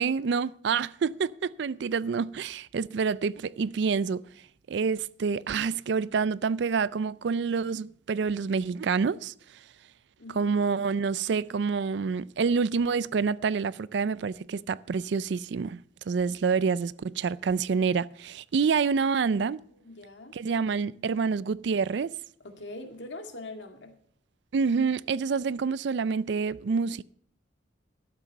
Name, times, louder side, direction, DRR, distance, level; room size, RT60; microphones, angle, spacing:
voice 1, 0.0-4.2 4.7-9.3 10.3-15.8 16.1-19.6 20.3-22.1 24.5-27.0, right 5 dB, 65° right, 0.4 m, -27 dB
voice 2, 10.2-10.5 19.3-20.4 22.4-24.0, left 2 dB, 70° left, 2.0 m, -43 dB
12.5 x 8.0 x 6.3 m
head